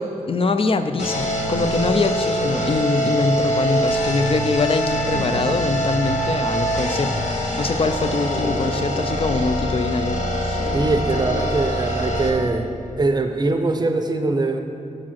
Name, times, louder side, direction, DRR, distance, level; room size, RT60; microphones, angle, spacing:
voice 1, 0.0-10.6, left 3 dB, 45° left, 9 dB, 0.4 m, -23 dB
sound 1, 1.0-12.3, equal, 65° left, 1.2 m, -24 dB
sound 2, 5.1-6.0 6.3-6.4 8.3-9.1 10.6-11.1, left 2 dB, 80° left, 1.1 m, -32 dB
voice 2, 10.7-12.7 13.0-14.6, right 2 dB, 30° right, 6 dB, 0.6 m, -22 dB
7.4 x 5.0 x 5.7 m, 2.8 s
wide cardioid pair, 85°, 13 cm